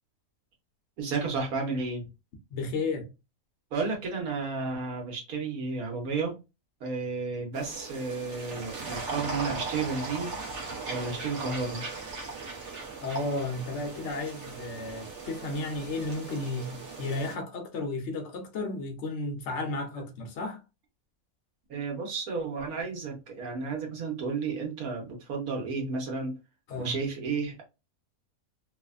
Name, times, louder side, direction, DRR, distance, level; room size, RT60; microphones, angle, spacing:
voice 1, 1.0-2.1 3.7-6.3 6.8-10.6 10.9-11.8 21.7-26.4 26.8-27.6, right 4 dB, 85° right, 1.4 m, -32 dB
voice 2, 2.5-3.1 13.0-20.6 26.7-26.9, left 2 dB, 60° left, 1.0 m, -33 dB
sound 1, 7.5-17.4, right 3 dB, 60° right, 1.1 m, -38 dB
3.1 x 2.1 x 2.4 m
omnidirectional pair, 1.5 m